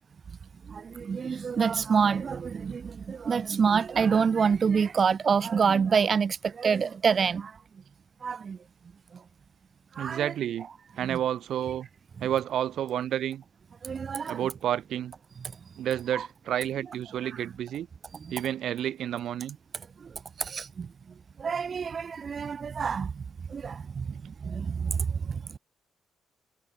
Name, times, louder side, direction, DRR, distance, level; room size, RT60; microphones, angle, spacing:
voice 1, 0.6-7.6 8.2-8.6 9.1-9.2 9.9-10.3 11.0-11.2 13.8-14.5 16.1-16.3 17.3-17.4 18.1-18.3 20.0-20.9 21.4-25.6, right 6 dB, 45° right, 0.9 m, -27 dB
voice 2, 10.0-10.7 11.0-11.9 12.2-13.4 14.3-15.1 15.8-17.9 18.3-19.6, right 11 dB, 70° right, 1.1 m, -30 dB
cardioid pair, 90°, 0 cm